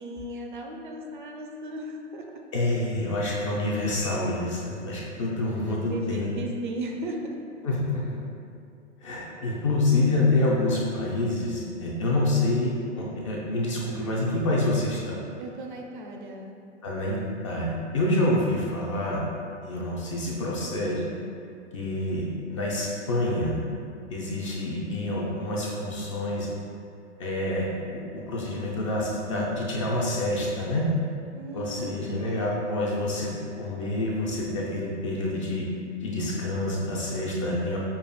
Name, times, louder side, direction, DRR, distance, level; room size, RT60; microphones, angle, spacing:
voice 1, 0.0-2.4 5.4-7.4 15.4-16.5 31.3-32.3, right 1 dB, 45° right, 1 dB, 0.4 m, -36 dB
voice 2, 2.5-6.3 7.6-8.2 9.0-15.2 16.8-17.2 17.4-19.2 19.6-21.0 21.7-23.6 24.1-26.5 27.2-30.9 31.5-33.3 33.6-35.7 36.0-37.8, left 2 dB, 30° left, -4 dB, 0.4 m, -27 dB
5.8 x 2.4 x 2.2 m, 2.5 s
figure-of-eight pair, 110°, 36 cm